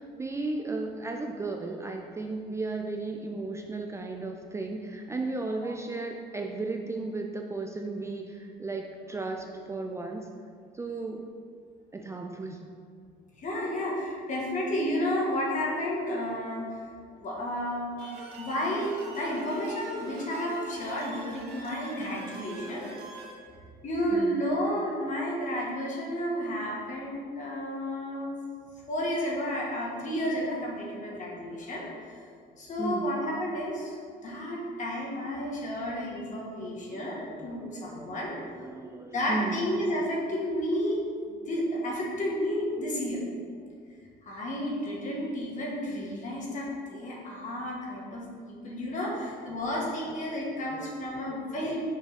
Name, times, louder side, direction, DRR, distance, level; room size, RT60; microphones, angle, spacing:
voice 1, 0.0-10.3 10.7-11.2 11.9-12.6 24.1-24.4 31.5-31.8 32.8-33.1 36.9-39.6 49.1-49.2 49.5-49.6 50.1-50.2 50.5-51.4 51.6-51.8, right 3 dB, 15° right, 2 dB, 0.4 m, -35 dB
voice 2, 13.4-16.9 17.2-22.9 23.8-28.4 28.9-32.2 32.6-34.0 34.2-38.4 39.1-41.0 41.3-43.2 44.2-51.9, equal, 45° left, -3 dB, 1.7 m, -32 dB
sound 1, 18.0-23.3, right 2 dB, 80° right, 1.2 m, -43 dB
6.4 x 3.6 x 5.1 m, 2.1 s
cardioid pair, 110°, 17 cm